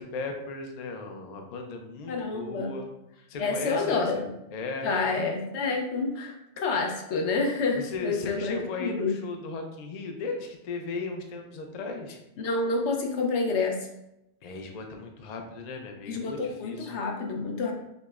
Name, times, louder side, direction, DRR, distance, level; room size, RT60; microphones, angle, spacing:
voice 1, 0.0-2.9 3.3-4.2 4.5-4.9 7.7-12.2 14.4-16.9, left 3 dB, 60° left, 3 dB, 0.4 m, -36 dB
voice 2, 2.1-2.7 3.4-4.3 4.8-9.2 12.4-13.9 16.1-17.7, left 3 dB, 80° left, 1 dB, 0.9 m, -28 dB
4.9 x 2.0 x 2.3 m, 0.87 s
omnidirectional pair, 1.1 m